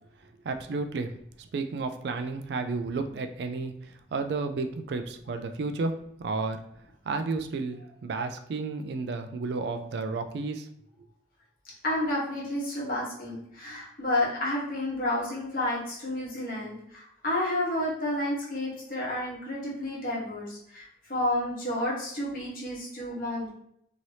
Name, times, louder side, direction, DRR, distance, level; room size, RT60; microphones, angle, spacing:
voice 1, 0.2-1.1 1.4-6.6 7.1-10.7, right 3 dB, 65° right, 7 dB, 0.3 m, -32 dB
voice 2, 11.8-23.5, left 1 dB, 50° left, -5 dB, 1.1 m, -30 dB
2.9 x 2.7 x 3.1 m, 0.71 s
head